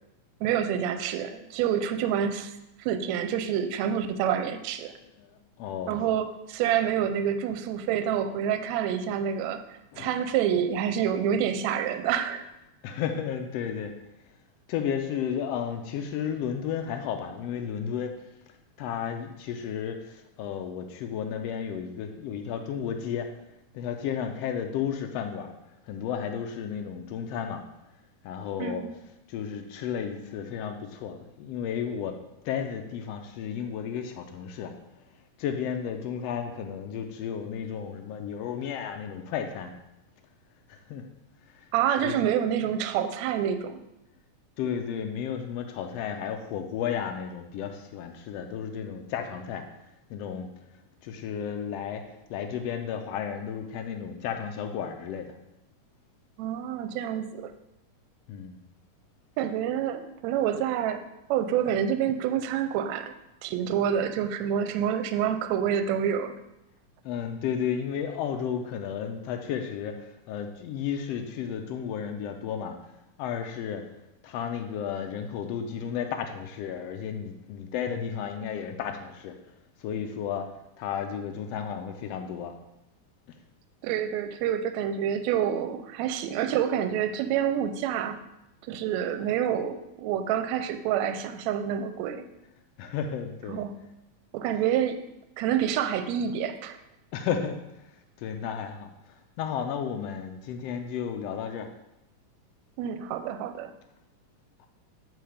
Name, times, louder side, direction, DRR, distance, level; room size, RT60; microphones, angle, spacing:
voice 1, 0.4-2.5 2.8-4.9 5.9-9.6 10.0-12.5 28.6-28.9 41.7-43.8 56.4-57.5 59.4-61.0 61.3-63.1 63.4-66.3 83.8-88.2 88.6-92.2 93.5-93.8 94.3-95.0 95.4-96.8 102.8-103.7, right 9 dB, 80° right, 9 dB, 1.7 m, -27 dB
voice 2, 5.2-6.0 9.9-10.2 12.8-13.9 14.7-18.2 18.8-23.3 23.7-25.5 25.9-27.6 28.2-28.9 29.3-32.2 32.4-34.7 35.4-39.7 40.7-41.0 41.5-41.6 42.0-42.1 44.6-49.6 50.1-50.5 51.0-52.0 52.3-55.3 58.3-58.6 67.0-72.8 73.2-73.8 74.2-79.4 79.8-80.5 80.8-82.5 92.8-93.6 97.1-97.6 98.2-98.9 99.4-101.7, left 8 dB, 80° left, 5 dB, 1.4 m, -33 dB
7.9 x 3.8 x 4.9 m, 0.88 s
omnidirectional pair, 3.4 m